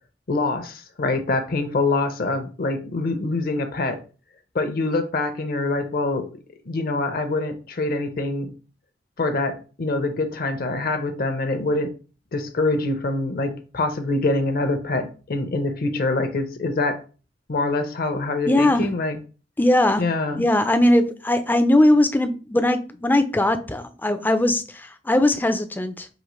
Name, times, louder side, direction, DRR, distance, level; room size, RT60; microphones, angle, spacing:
voice 1, 0.3-4.0 4.5-6.3 6.7-8.5 9.2-11.9 12.3-17.0 17.5-19.2 20.0-20.4, left 2 dB, 55° left, 0.6 m, -25 dB
voice 2, 18.5-18.9 19.6-20.0 20.3-26.1, left 1 dB, 10° left, 0.4 m, -20 dB
5.0 x 2.8 x 3.0 m
head